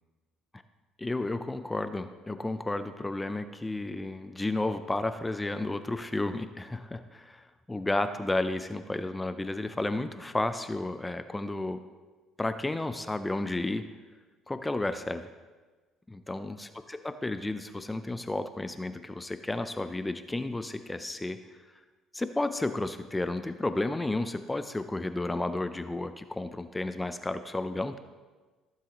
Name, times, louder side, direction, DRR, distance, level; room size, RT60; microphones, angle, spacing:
voice 1, 1.0-11.8 12.4-13.8 14.5-15.3 16.1-21.4 22.1-28.0, left 2 dB, 15° left, 10 dB, 0.5 m, -32 dB
15.0 x 7.5 x 3.0 m, 1.3 s
supercardioid pair, 85°, 0 cm